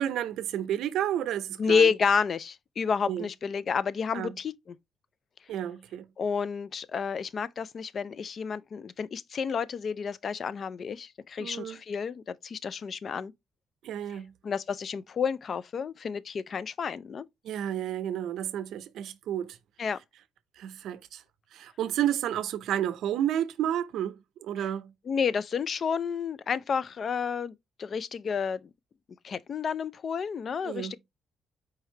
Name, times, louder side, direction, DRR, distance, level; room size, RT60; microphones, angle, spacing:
voice 1, 0.0-1.9 3.1-3.3 4.1-4.4 5.5-6.1 11.4-11.8 13.8-14.3 17.4-19.6 20.6-21.2 21.5-24.9 30.6-31.0, right 11 dB, 80° right, 0.5 m, -31 dB
voice 2, 1.6-4.5 6.2-13.3 14.4-17.3 19.8-20.0 25.1-28.7 29.2-31.0, left 6 dB, 50° left, 0.4 m, -30 dB
4.7 x 3.2 x 3.1 m
cardioid pair, 90°, 0 cm